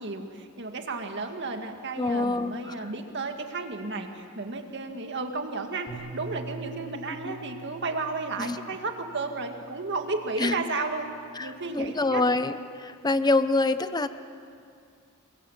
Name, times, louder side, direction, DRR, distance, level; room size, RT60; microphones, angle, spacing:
voice 1, 0.0-11.1 11.4-12.2, right 3 dB, 50° right, 4 dB, 2.1 m, -33 dB
voice 2, 2.0-2.7 7.2-7.4 8.4-8.6 10.4-10.6 11.4-14.1, left 2 dB, 20° left, 11 dB, 0.8 m, -26 dB
Bass guitar, 5.9-10.4 11.1-12.1, right 4 dB, 45° left, 3.9 m, -45 dB
30.0 x 23.5 x 7.4 m, 2.3 s
head